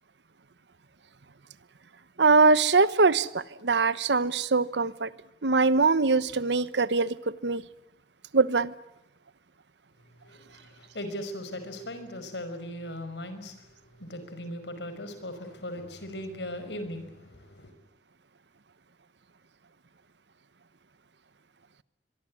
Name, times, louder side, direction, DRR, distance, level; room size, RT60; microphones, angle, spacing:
voice 1, 2.2-5.1 5.4-7.6 8.3-8.7, right 4 dB, 80° right, 1.1 m, -22 dB
voice 2, 10.2-17.7, left 1 dB, 80° left, 5.5 m, -39 dB
24.0 x 23.5 x 9.7 m
head